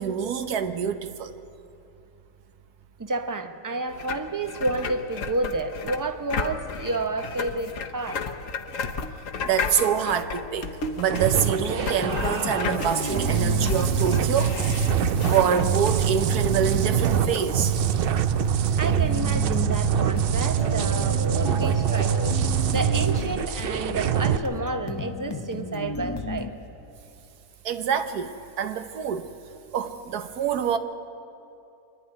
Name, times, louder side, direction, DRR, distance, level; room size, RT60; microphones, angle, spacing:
voice 1, 0.0-1.3 9.4-10.7 11.0-14.9 15.2-17.8 27.6-29.3 29.7-30.8, right 8 dB, 85° right, 9 dB, 1.5 m, -26 dB
voice 2, 3.0-8.2 18.8-22.3 22.7-26.5, right 2 dB, 20° right, 8 dB, 0.6 m, -30 dB
sound 1, 3.9-16.0, left 5 dB, 60° left, 1.3 m, -33 dB
sound 2, 11.1-24.4, right 8 dB, 65° right, 0.5 m, -24 dB
sound 3, 11.6-26.5, left 3 dB, 25° left, 0.6 m, -34 dB
24.5 x 11.0 x 9.7 m, 2.7 s
omnidirectional pair, 1.6 m